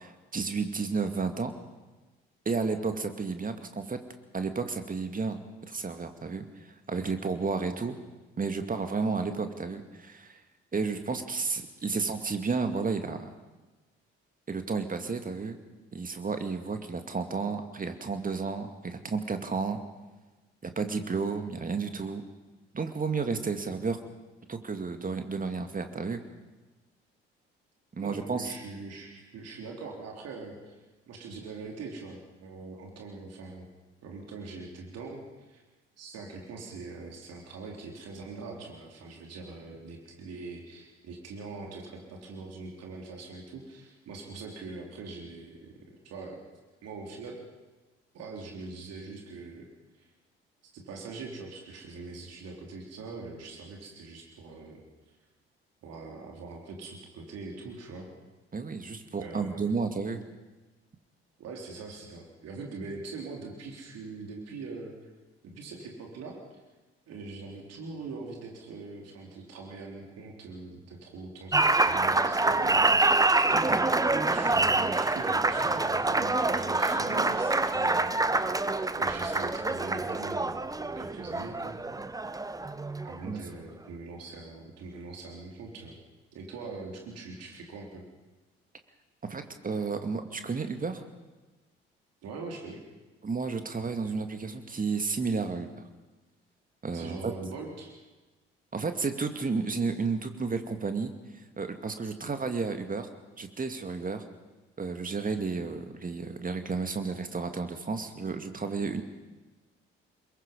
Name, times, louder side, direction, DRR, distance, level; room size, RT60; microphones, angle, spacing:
voice 1, 0.0-1.5 2.5-4.0 4.3-5.4 5.7-8.0 8.4-10.4 10.7-13.3 14.5-15.6 15.9-19.8 20.6-22.2 22.7-24.0 24.5-26.2 27.9-28.5 58.5-60.2 83.3-83.4 89.2-91.0 93.2-95.7 96.8-97.3 98.7-101.1 101.6-103.1 103.4-104.2 104.8-109.0, right 4 dB, 25° right, 7 dB, 2.3 m, -32 dB
voice 2, 28.0-30.8 31.1-33.7 34.0-35.6 36.0-45.7 46.0-46.4 46.8-47.4 48.1-49.7 50.0-50.1 50.6-54.8 55.8-58.1 59.2-59.8 61.4-65.1 65.4-66.6 67.1-73.3 73.6-78.5 78.9-81.8 83.0-86.0 86.3-88.0 92.2-92.8 96.9-97.9, right 3 dB, 55° right, 1 dB, 3.8 m, -42 dB
Applause, 71.5-83.3, right 2 dB, 10° right, 0.9 m, -26 dB
25.5 x 22.0 x 5.5 m, 1.2 s
figure-of-eight pair, 45°, 30 cm